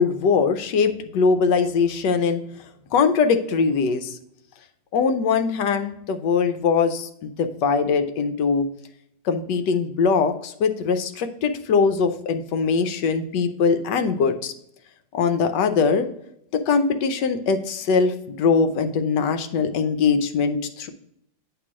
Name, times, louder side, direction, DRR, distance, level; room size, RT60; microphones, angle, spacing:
voice 1, 0.0-2.4 2.9-4.2 4.9-8.7 9.2-14.5 15.1-16.1 16.5-20.9, left 5 dB, 75° left, 8 dB, 1.2 m, -21 dB
7.9 x 3.0 x 6.0 m, 0.76 s
omnidirectional pair, 2.0 m